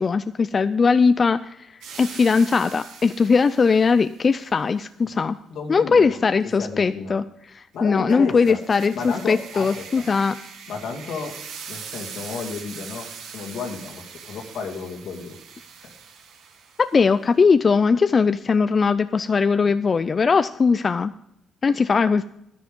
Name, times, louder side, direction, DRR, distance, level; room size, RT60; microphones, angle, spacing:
voice 1, 0.0-1.7 2.0-5.4 5.7-10.4 16.8-21.1 21.6-22.2, left 5 dB, 40° left, 13 dB, 0.4 m, -20 dB
sound 1, 1.8-4.1 8.1-17.0, right 6 dB, 90° right, 1.7 m, -41 dB
voice 2, 5.5-6.2 6.6-7.1 7.7-8.6 8.9-10.0 10.7-11.3 11.7-13.1 13.3-15.4, left 5 dB, 80° left, 0 dB, 2.5 m, -32 dB
10.5 x 10.5 x 5.3 m, 0.79 s
cardioid pair, 90°, 0 cm